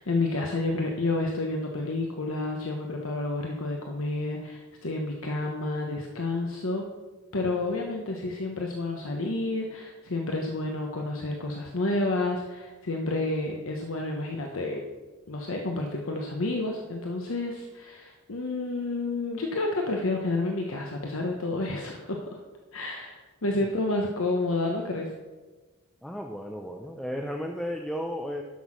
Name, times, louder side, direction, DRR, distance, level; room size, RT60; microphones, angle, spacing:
voice 1, 0.0-6.8 7.3-14.8 15.3-22.4 22.7-25.1, left 2 dB, 70° left, 1 dB, 1.0 m, -30 dB
voice 2, 26.0-28.4, equal, ahead, 2 dB, 0.5 m, -34 dB
11.5 x 6.3 x 6.2 m, 1.3 s
head